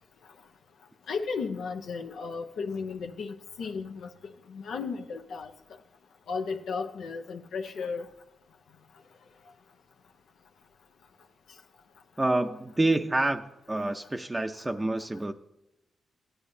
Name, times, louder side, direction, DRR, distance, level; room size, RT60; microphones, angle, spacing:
voice 1, 1.1-4.1 4.5-5.5 6.3-8.1, left 5 dB, 80° left, 0.8 m, -34 dB
voice 2, 12.2-15.3, right 2 dB, 20° right, 0.6 m, -28 dB
16.0 x 10.0 x 2.7 m
cardioid pair, 70°, 0 cm